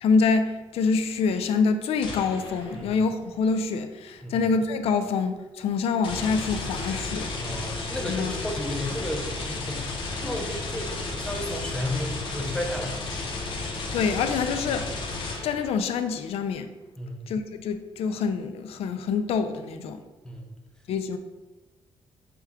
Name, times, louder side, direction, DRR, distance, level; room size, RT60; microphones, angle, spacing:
voice 1, 0.0-7.3 8.1-8.3 13.9-14.9 15.4-16.7 17.3-20.0 20.9-21.2, left 5 dB, 75° left, 8 dB, 0.4 m, -26 dB
sound 1, 2.0-3.0 6.0-15.8, left 3 dB, 60° left, 0.8 m, -33 dB
voice 2, 7.4-13.0 17.0-17.3 20.2-20.5, left 1 dB, 5° left, 0 dB, 0.5 m, -33 dB
5.8 x 2.3 x 3.5 m, 1.1 s
wide cardioid pair, 180°, 10 cm